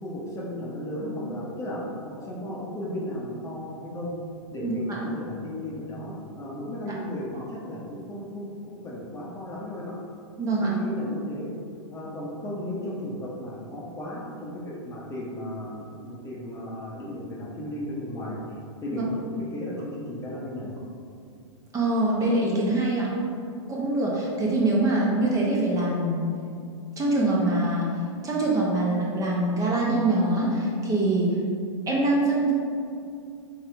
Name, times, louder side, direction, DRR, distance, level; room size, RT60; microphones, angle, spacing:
voice 1, 0.0-4.2 4.5-9.9 10.6-11.5 11.9-18.4 18.8-20.7, left 1 dB, 15° left, -4 dB, 0.8 m, -35 dB
voice 2, 4.6-5.0 7.3-7.4 10.4-10.8 18.9-19.0 21.7-23.1 23.7-26.2 27.0-27.9 28.2-31.4 31.9-32.5, right 2 dB, 20° right, -4 dB, 0.8 m, -24 dB
4.2 x 3.7 x 3.4 m, 2.4 s
hypercardioid pair, 110°, 17 cm